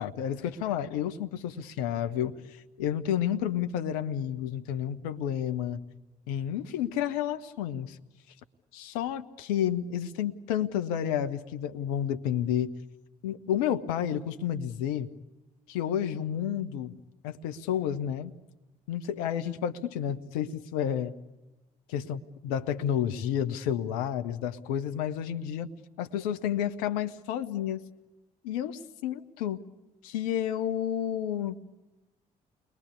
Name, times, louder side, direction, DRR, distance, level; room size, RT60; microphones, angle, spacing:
voice 1, 0.0-2.4 2.8-5.8 6.3-8.0 8.7-12.7 13.2-15.1 15.7-17.0 17.2-18.3 18.9-21.2 21.9-25.7 26.0-27.8 28.4-29.6 30.0-31.6, left 10 dB, 70° left, 8 dB, 1.1 m, -30 dB
30.0 x 22.0 x 8.4 m, 1.1 s
figure-of-eight pair, 40°, 20 cm